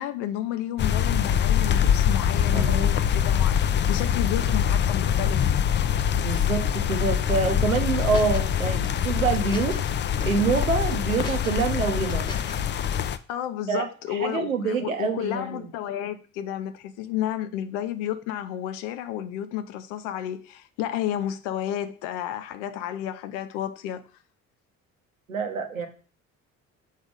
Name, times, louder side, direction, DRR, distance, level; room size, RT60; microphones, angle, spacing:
voice 1, 0.0-5.5 13.3-24.0, left 11 dB, 65° left, 0.8 m, -31 dB
sound 1, 0.8-13.2, left 9 dB, 30° left, 0.5 m, -24 dB
voice 2, 2.5-3.0 6.2-9.8 10.2-12.3 13.7-15.7 25.3-25.9, right 5 dB, 85° right, 0.8 m, -26 dB
sound 2, 7.4-8.5 8.8-9.9 10.2-10.6 10.9-12.7, left 3 dB, 10° left, 0.9 m, -40 dB
6.5 x 3.6 x 5.2 m
figure-of-eight pair, 50°, 39 cm